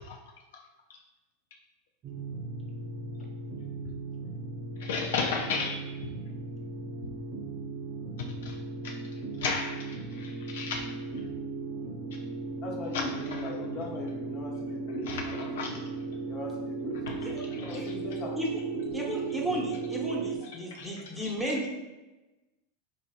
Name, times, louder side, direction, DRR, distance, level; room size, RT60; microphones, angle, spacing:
sound 1, 2.0-20.4, right 4 dB, 35° right, 0.5 m, -37 dB
voice 1, 4.8-5.8 8.4-8.5 8.8-8.9 9.4-9.9 10.2-10.9 15.1-15.7 17.1-17.2 20.7-20.9, left 5 dB, 75° left, 1 dB, 0.4 m, -32 dB
voice 2, 12.6-15.8 16.2-17.3 17.6-18.4, left 3 dB, 50° left, -2 dB, 1.0 m, -40 dB
voice 3, 18.9-21.7, right 1 dB, 5° right, -3 dB, 0.8 m, -33 dB
4.1 x 2.8 x 2.3 m, 1.1 s
hypercardioid pair, 110°, 0 cm